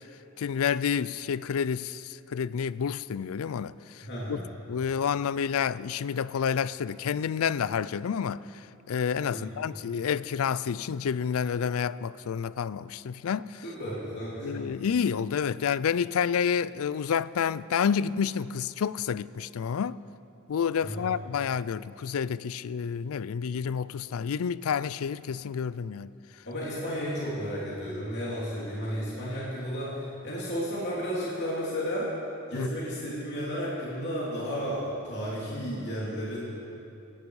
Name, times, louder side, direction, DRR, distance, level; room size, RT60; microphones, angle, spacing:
voice 1, 0.4-4.4 4.7-8.4 8.9-13.6 14.4-20.0 20.5-26.1 32.5-32.7, left 7 dB, 70° left, 0.4 m, -29 dB
voice 2, 4.0-4.5 9.3-9.6 13.6-14.7 20.8-21.1 26.4-32.1 32.5-36.4, equal, 55° left, 2.9 m, -33 dB
17.5 x 16.0 x 4.8 m
head